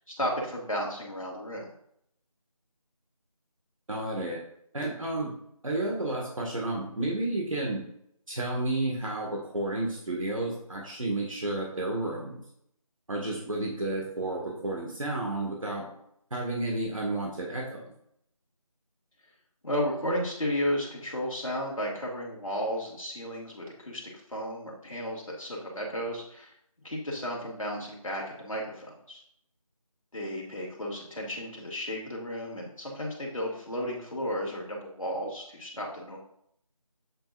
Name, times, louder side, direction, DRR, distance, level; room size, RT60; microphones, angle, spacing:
voice 1, 0.1-1.7 19.6-24.0 24.3-26.5 26.8-29.2 30.1-36.2, equal, 65° left, -2 dB, 2.5 m, -33 dB
voice 2, 3.9-4.4 4.7-5.3 5.6-7.9 8.3-12.4 13.1-15.9 16.3-17.9, right 2 dB, 65° right, -2 dB, 1.9 m, -31 dB
8.2 x 6.5 x 2.6 m, 0.71 s
figure-of-eight pair, 175°, 19 cm